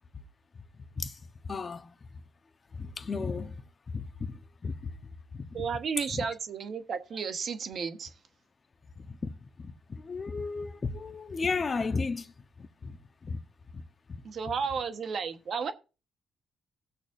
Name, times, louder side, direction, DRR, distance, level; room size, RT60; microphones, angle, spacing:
voice 1, 1.5-1.9 2.7-3.6 3.9-4.9 5.3-5.6 6.1-6.3 9.0-9.3 9.6-12.3 12.6-12.9 13.2-13.4 13.7-13.8 14.1-14.2, left 4 dB, 35° left, 1.0 m, -34 dB
voice 2, 5.5-8.1 14.2-15.7, right 6 dB, 55° right, 1.2 m, -33 dB
18.5 x 6.5 x 2.6 m
cardioid pair, 90°, 0 cm